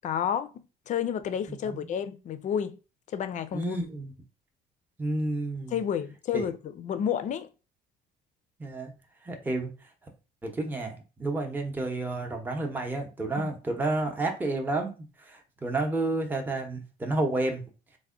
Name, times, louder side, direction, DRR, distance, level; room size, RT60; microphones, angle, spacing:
voice 1, 0.0-0.5 0.9-2.8 3.1-3.8 5.7-7.5 13.4-13.5, left 8 dB, 45° left, 0.4 m, -30 dB
voice 2, 1.5-1.9 3.5-4.1 5.0-5.7 6.3-6.5 8.6-8.9 9.2-9.7 10.4-14.9 15.3-17.6, right 2 dB, 10° right, 0.7 m, -30 dB
3.4 x 2.1 x 3.6 m
cardioid pair, 110°, 17 cm